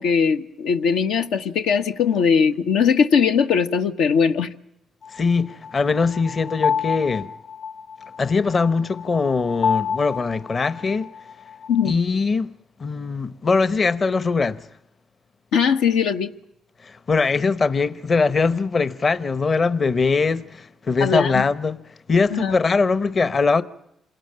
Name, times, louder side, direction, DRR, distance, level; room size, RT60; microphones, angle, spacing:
voice 1, 0.0-4.5 11.7-12.0 15.5-16.3 21.0-21.5 22.3-22.5, left 6 dB, 90° left, 1.2 m, -20 dB
sound 1, 5.0-11.9, left 7 dB, 70° left, 2.1 m, -29 dB
voice 2, 5.1-7.3 8.2-11.1 11.8-12.5 12.8-14.7 16.8-21.8 22.1-23.6, left 4 dB, 40° left, 0.9 m, -21 dB
27.5 x 18.0 x 8.8 m
cardioid pair, 90°, 0 cm